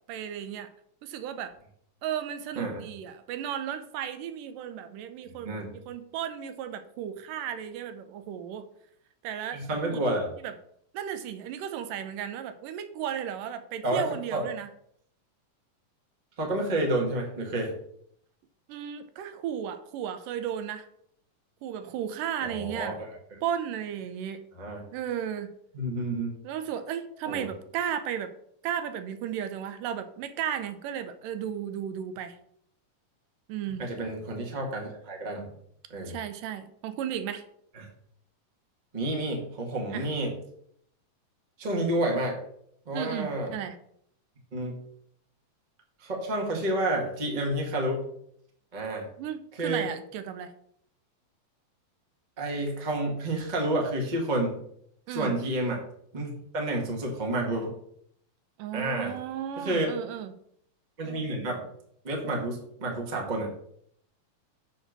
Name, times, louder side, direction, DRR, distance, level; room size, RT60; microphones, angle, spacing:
voice 1, 0.1-0.7 1.0-1.5 2.0-8.7 9.2-9.6 9.9-10.0 10.4-10.5 10.9-14.7 18.7-20.9 21.6-23.0 23.4-24.4 24.9-25.5 26.4-28.3 28.6-32.4 33.5-33.9 36.1-37.4 39.9-40.1 42.9-43.8 49.2-50.5 55.1-55.3 58.6-60.3, right 9 dB, 85° right, 10 dB, 2.3 m, -34 dB
voice 2, 9.5-10.3 13.8-14.1 14.3-14.5 16.4-17.7 22.4-22.9 24.6-24.8 25.7-26.3 27.3-27.5 33.8-35.5 35.9-36.2 37.7-37.9 38.9-40.3 41.6-42.4 42.9-43.5 44.5-44.7 46.0-48.0 48.7-49.1 49.5-49.8 52.4-54.6 55.1-55.8 56.1-57.8 58.7-59.1 59.6-59.9 61.0-61.6 62.0-63.5, right 1 dB, 25° right, 0 dB, 1.0 m, -29 dB
7.0 x 4.5 x 6.5 m, 0.69 s
omnidirectional pair, 3.8 m